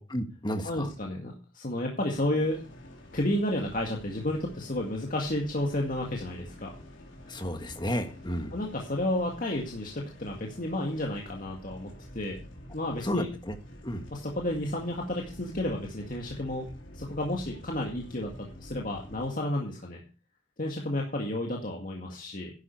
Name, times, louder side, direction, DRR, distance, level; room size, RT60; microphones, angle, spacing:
voice 1, 0.1-0.9 7.3-8.5 13.0-13.5 13.8-14.1, equal, 25° left, 7 dB, 1.5 m, -32 dB
voice 2, 0.6-2.6 3.1-6.7 8.5-12.4 12.7-13.3 14.1-16.7 16.9-20.0 20.6-22.5, left 1 dB, 45° left, 0 dB, 2.0 m, -31 dB
sound 1, 2.2-19.3, equal, 70° left, 3.7 m, -48 dB
11.5 x 11.0 x 4.6 m, 0.34 s
head